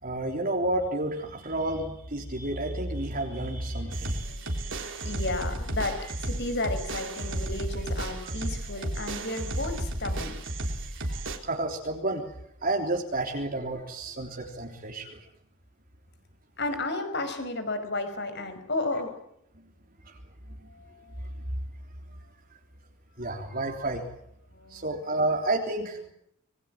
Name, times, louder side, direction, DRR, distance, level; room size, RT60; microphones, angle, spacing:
voice 1, 0.0-4.8 11.0-12.2 12.6-15.2 20.1-20.2 23.2-24.0 24.7-26.0, right 2 dB, 40° right, 1 dB, 3.5 m, -31 dB
voice 2, 3.8-10.4 16.6-19.2 20.6-21.5 24.5-24.9, left 2 dB, 50° left, 8 dB, 5.4 m, -33 dB
sound 1, 3.9-11.4, right 1 dB, 55° right, 3.9 m, -33 dB
26.0 x 23.0 x 7.5 m, 0.72 s
head